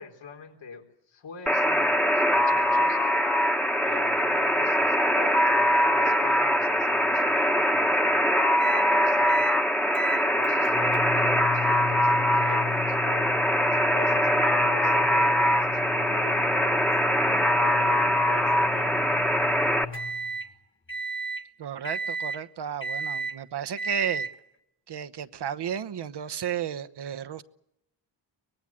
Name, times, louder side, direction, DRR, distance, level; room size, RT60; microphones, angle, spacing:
voice 1, 0.0-3.0 3.8-9.5 10.1-19.3, left 5 dB, 80° left, 4.1 m, -43 dB
Alarm, 1.5-19.8, equal, 5° left, 1.3 m, -23 dB
sound 1, 8.6-8.9 9.3-9.6 9.9-20.5 20.9-21.4 21.8-22.4 22.8-23.4 23.8-24.3, left 1 dB, 25° left, 1.8 m, -34 dB
voice 2, 21.6-24.3 24.9-27.4, right 9 dB, 65° right, 1.1 m, -33 dB
24.0 x 20.0 x 7.5 m
wide cardioid pair, 120°, 44 cm